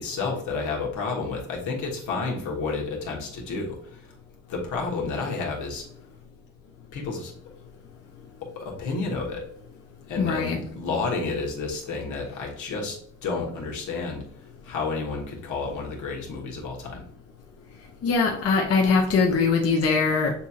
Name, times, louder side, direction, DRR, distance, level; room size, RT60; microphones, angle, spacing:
voice 1, 0.0-4.0 4.5-5.9 6.9-7.3 8.5-9.4 10.1-14.2 14.6-17.0, left 4 dB, 85° left, -1 dB, 1.3 m, -30 dB
voice 2, 10.2-10.6 18.0-20.3, left 4 dB, 50° left, 0 dB, 0.8 m, -22 dB
6.8 x 2.8 x 2.4 m, 0.64 s
cardioid pair, 90°, 30 cm